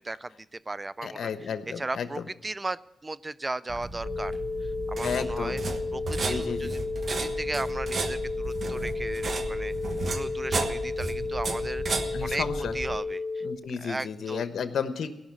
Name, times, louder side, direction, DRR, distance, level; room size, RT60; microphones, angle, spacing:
voice 1, 0.0-1.3 1.6-4.3 4.9-5.6 5.9-6.8 7.1-9.7 10.0-11.8 12.2-12.4 12.7-13.4 13.8-14.4, right 2 dB, 25° right, 18 dB, 0.5 m, -36 dB
voice 2, 1.0-2.3 5.0-5.6 6.1-6.7 12.1-12.7 13.4-15.1, left 6 dB, 75° left, 9 dB, 1.1 m, -33 dB
sound 1, 3.7-13.0, right 3 dB, 55° right, 1.3 m, -34 dB
sound 2, 4.0-13.6, left 3 dB, 55° left, 1.4 m, -33 dB
17.5 x 6.1 x 8.9 m, 0.95 s
cardioid pair, 70°, 0 cm